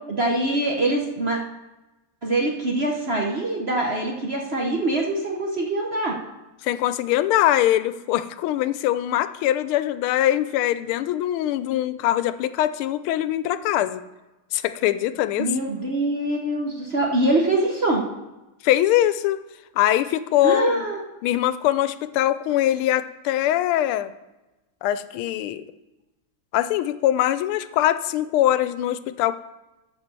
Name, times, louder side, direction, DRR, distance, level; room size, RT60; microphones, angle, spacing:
voice 1, 0.1-1.4 2.2-6.1 15.4-18.0 20.4-21.0, right 2 dB, 40° right, 0 dB, 0.9 m, -24 dB
voice 2, 6.6-14.0 14.5-15.5 18.6-19.4 19.7-20.8 21.2-24.1 24.8-25.6 26.5-29.4, left 13 dB, 85° left, 13 dB, 1.4 m, -22 dB
12.5 x 4.6 x 6.7 m, 1.1 s
omnidirectional pair, 2.3 m